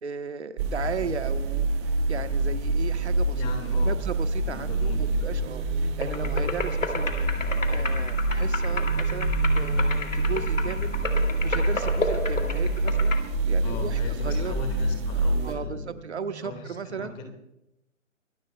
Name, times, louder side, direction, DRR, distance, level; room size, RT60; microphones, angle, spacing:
voice 1, 0.0-3.4 3.7-14.6 15.4-17.3, right 6 dB, 60° right, 9 dB, 1.2 m, -36 dB
sound 1, 0.6-15.5, right 2 dB, 20° right, 1.8 m, -26 dB
voice 2, 3.3-4.0 4.4-5.3 13.6-15.9 16.4-17.3, left 4 dB, 15° left, 4 dB, 1.9 m, -39 dB
sound 2, 4.0-16.8, right 4 dB, 80° right, 6.4 m, -44 dB
sound 3, 6.0-13.2, left 3 dB, 75° left, 2.7 m, -32 dB
24.5 x 19.5 x 2.3 m, 0.88 s
figure-of-eight pair, 150°, 39 cm